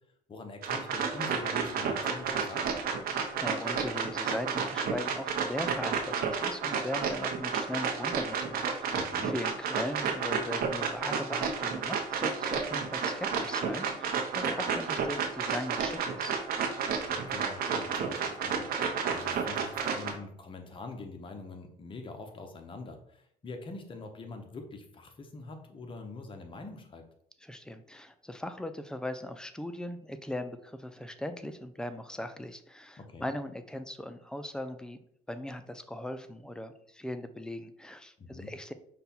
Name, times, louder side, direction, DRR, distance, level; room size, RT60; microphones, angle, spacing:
voice 1, 0.3-2.8 8.9-9.3 17.0-27.0 33.0-33.3 38.2-38.5, left 3 dB, 30° left, 5 dB, 0.8 m, -44 dB
sound 1, 0.6-20.1, right 6 dB, 60° right, 0.8 m, -31 dB
voice 2, 3.1-16.4 27.4-35.0 35.3-38.7, left 1 dB, 5° left, 10 dB, 0.3 m, -39 dB
5.3 x 2.3 x 4.2 m, 0.69 s
cardioid pair, 110°, 17 cm